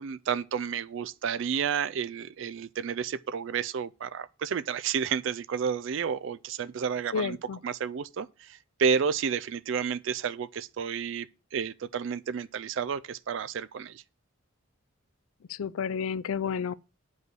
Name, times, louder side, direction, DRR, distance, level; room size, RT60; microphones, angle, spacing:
voice 1, 0.0-7.4 7.6-14.0, right 7 dB, 60° right, 0.4 m, -31 dB
voice 2, 7.1-7.6 15.5-16.7, left 6 dB, 80° left, 0.4 m, -31 dB
8.1 x 5.5 x 6.0 m
head